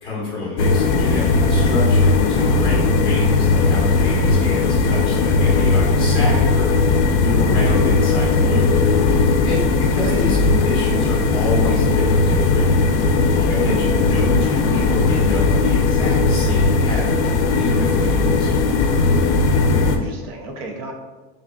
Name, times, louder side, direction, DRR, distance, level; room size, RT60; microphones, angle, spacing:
voice 1, 0.0-6.8 7.2-8.8 9.4-13.1 13.3-18.5, left 2 dB, 15° left, -5 dB, 1.0 m, -28 dB
sound 1, 0.6-20.0, left 3 dB, 75° left, 0.5 m, -17 dB
voice 2, 7.7-8.0 10.0-10.2 19.8-20.9, right 2 dB, 35° right, 2 dB, 0.4 m, -34 dB
3.6 x 3.4 x 2.2 m, 1.3 s
supercardioid pair, 175°, 34 cm